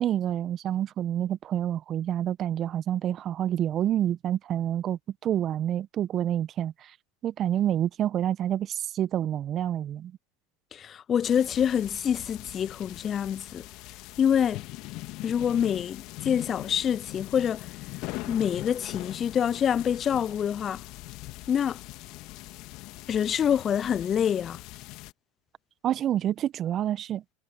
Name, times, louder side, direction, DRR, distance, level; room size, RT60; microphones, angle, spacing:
voice 1, 0.0-6.9 7.2-10.1 25.8-27.2, right 11 dB, 40° right, 1.3 m, -28 dB
voice 2, 10.7-13.7 14.2-14.6 15.2-17.7 18.3-20.8 21.5-21.8 23.1-24.6, left 8 dB, 30° left, 0.6 m, -26 dB
sound 1, 11.2-25.1, left 21 dB, 50° left, 2.0 m, -41 dB
hypercardioid pair, 85°, 0 cm